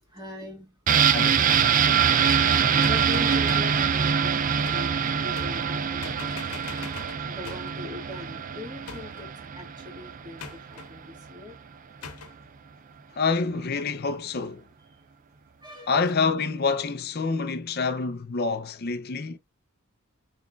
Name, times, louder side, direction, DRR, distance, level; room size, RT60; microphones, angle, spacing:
voice 1, 0.0-1.1 2.7-4.9 5.2-6.4 7.2-11.6 13.1-13.2 15.6-15.9, left 3 dB, 20° right, 1.8 m, -41 dB
sound 1, 0.9-10.5 10.8-10.9, right 7 dB, 35° right, 0.4 m, -24 dB
voice 2, 1.1-1.5 2.2-2.4 13.2-14.6 15.9-19.4, left 4 dB, 45° left, 0.6 m, -27 dB
sound 2, 2.3-3.8 4.6-5.0 5.3-5.8 6.0-7.8 8.9-9.3 10.4-10.9 12.0-12.4, left 4 dB, 85° left, 1.0 m, -42 dB
6.2 x 3.4 x 2.4 m
head